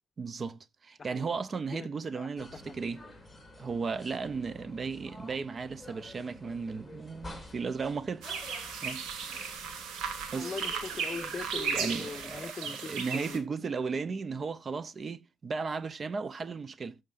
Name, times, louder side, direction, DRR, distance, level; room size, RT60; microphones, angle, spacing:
voice 1, 0.2-3.0 3.6-8.2 8.8-9.0 10.3-10.5 11.7-17.0, right 5 dB, 40° right, 0.5 m, -35 dB
voice 2, 1.7-2.5 10.4-13.4, left 4 dB, 35° left, 0.9 m, -41 dB
sound 1, 2.4-12.5, left 1 dB, 5° left, 4.8 m, -48 dB
sound 2, 8.2-13.4, right 6 dB, 85° right, 1.7 m, -36 dB
17.0 x 6.5 x 2.5 m
cardioid pair, 90°, 0 cm